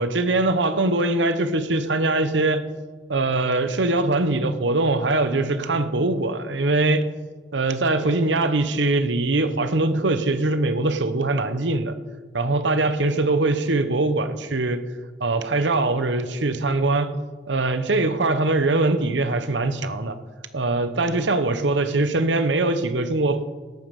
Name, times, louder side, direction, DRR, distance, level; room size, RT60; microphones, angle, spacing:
voice 1, 0.0-2.6 3.1-7.0 7.5-12.0 12.3-14.8 15.2-17.1 17.5-20.2 20.5-23.4, right 2 dB, 70° right, 1.0 m, -22 dB
18.0 x 8.8 x 5.4 m
head